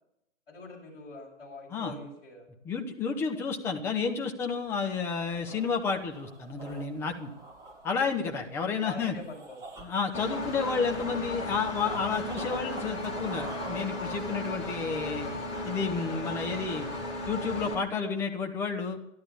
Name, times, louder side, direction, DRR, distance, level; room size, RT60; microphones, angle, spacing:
voice 1, 0.5-2.5 8.8-9.6, left 3 dB, 50° left, -3 dB, 7.3 m, -44 dB
voice 2, 2.6-7.3 7.8-9.1 9.8-15.3 15.6-16.9 17.2-19.0, left 5 dB, 5° left, 2 dB, 0.6 m, -31 dB
sound 1, 4.7-15.0, right 2 dB, 10° right, 1.8 m, -47 dB
Engine, 10.1-17.7, left 1 dB, 30° left, 4.0 m, -35 dB
12.5 x 12.0 x 7.0 m, 0.82 s
figure-of-eight pair, 125°, 37 cm